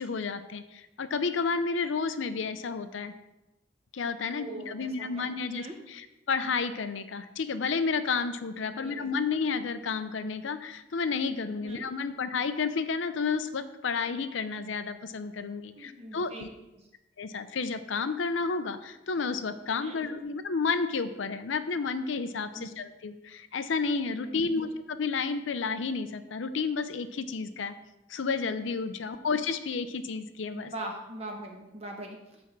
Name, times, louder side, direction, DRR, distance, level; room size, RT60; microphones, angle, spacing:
voice 1, 0.0-3.1 3.9-16.5 17.2-27.8 28.1-30.7, left 4 dB, 80° left, 10 dB, 0.5 m, -31 dB
voice 2, 4.2-5.8 8.7-9.1 11.6-11.9 15.7-16.4 16.8-16.9 19.8-20.0 22.5-22.7 24.2-24.6 30.5-32.4, right 1 dB, 35° right, 1 dB, 1.0 m, -42 dB
10.5 x 3.6 x 7.2 m, 0.97 s
head